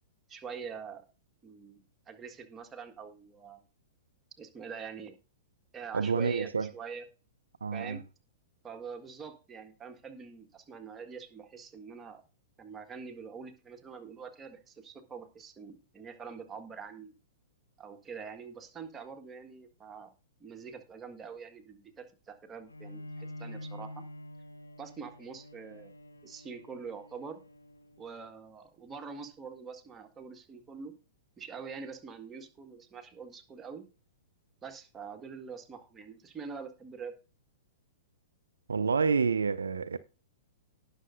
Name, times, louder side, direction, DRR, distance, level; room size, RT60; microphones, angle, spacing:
voice 1, 0.3-1.0 1.4-3.6 4.4-5.1 5.7-7.0 7.7-8.0 8.6-12.2 12.6-17.1 17.8-20.1 20.4-24.1 24.8-25.9 26.2-27.4 28.0-31.0 31.4-33.8 34.6-37.1, right 5 dB, 15° right, 1.6 m, -45 dB
voice 2, 5.9-6.7 7.6-8.0 38.7-40.0, right 5 dB, 70° right, 0.5 m, -28 dB
Bowed string instrument, 22.7-28.3, left 1 dB, 80° left, 1.1 m, -47 dB
18.0 x 6.6 x 2.6 m
figure-of-eight pair, 105°, 0 cm